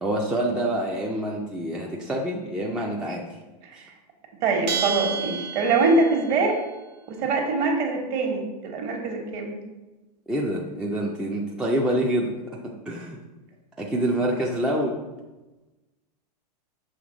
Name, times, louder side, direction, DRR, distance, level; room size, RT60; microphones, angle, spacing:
voice 1, 0.0-3.2 3.7-3.9 10.3-12.6 12.9-13.2 13.8-15.0, right 1 dB, 5° right, -2 dB, 0.3 m, -26 dB
voice 2, 4.4-6.6 7.1-9.5, right 3 dB, 40° right, 2 dB, 1.2 m, -23 dB
Bell, 4.7-6.2, right 6 dB, 85° right, 0.6 m, -30 dB
6.4 x 3.4 x 5.0 m, 1.1 s
supercardioid pair, 150°, 21 cm